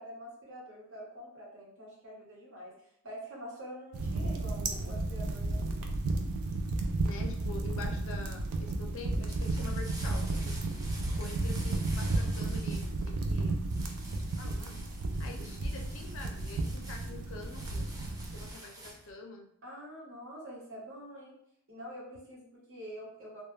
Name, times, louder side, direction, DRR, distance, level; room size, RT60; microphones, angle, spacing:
voice 1, 0.0-2.7 3.0-5.7 19.6-21.4 21.7-23.4, equal, 65° right, -5 dB, 1.1 m, -46 dB
sound 1, 3.9-18.5, right 2 dB, 80° right, 0.4 m, -33 dB
voice 2, 7.0-10.6 11.2-13.7 14.1-14.8 15.2-17.9 18.3-19.5, left 3 dB, 65° left, 2 dB, 0.5 m, -46 dB
sound 2, 9.0-19.1, right 1 dB, 15° right, 0.4 m, -49 dB
2.3 x 2.1 x 3.1 m, 0.69 s
head